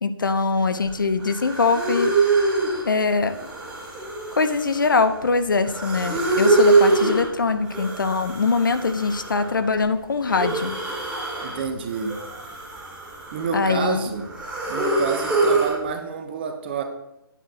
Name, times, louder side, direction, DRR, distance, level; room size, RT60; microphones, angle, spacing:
voice 1, 0.0-2.2 2.8-3.4 4.4-10.8 13.5-14.1, left 4 dB, 55° left, 10 dB, 0.6 m, -22 dB
sound 1, 0.9-1.0 1.2-2.9 3.2-5.2 5.6-7.3 7.7-9.6 10.2-11.6 11.9-13.7 14.0-15.8, right 3 dB, 5° right, 1.2 m, -24 dB
voice 2, 11.4-12.2 13.3-14.3 14.7-16.8, right 5 dB, 25° right, 6 dB, 0.8 m, -28 dB
10.0 x 9.2 x 2.8 m, 0.87 s
figure-of-eight pair, 145°, 12 cm